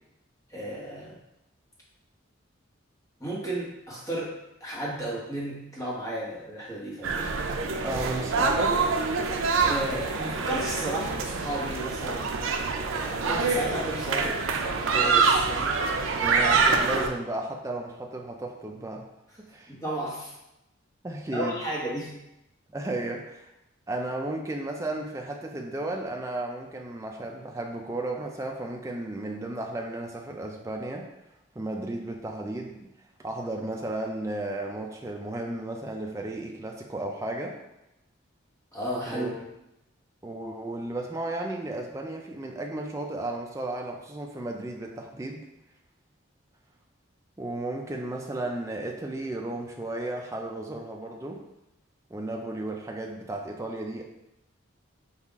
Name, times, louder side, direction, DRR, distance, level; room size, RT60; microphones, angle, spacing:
voice 1, 0.5-1.2 3.2-4.3 4.6-7.3 9.5-12.3 12.9-15.8 19.7-20.3 21.3-22.2 38.7-39.2, right 1 dB, 15° left, -5 dB, 1.1 m, -33 dB
sound 1, 7.0-17.1, right 4 dB, 75° right, 0.5 m, -26 dB
voice 2, 7.8-8.9 16.2-19.1 19.4-19.7 21.0-21.6 22.7-23.5 23.9-31.1 31.6-32.9 33.2-37.6 39.1-39.5 40.2-45.4 47.4-51.4 52.1-54.0, right 2 dB, 15° right, 1 dB, 0.3 m, -34 dB
5.5 x 2.4 x 3.5 m, 0.88 s
head